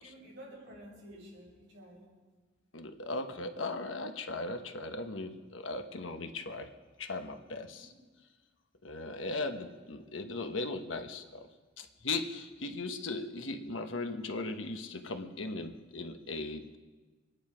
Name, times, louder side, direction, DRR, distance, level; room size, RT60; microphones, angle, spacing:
voice 1, 0.0-2.1 7.6-7.9 12.6-12.8, equal, 65° right, -4 dB, 6.7 m, -51 dB
voice 2, 2.7-6.7 7.0-7.9 8.8-11.5 11.8-16.8, left 3 dB, 90° left, 6 dB, 1.2 m, -38 dB
26.5 x 10.5 x 5.1 m, 1.3 s
head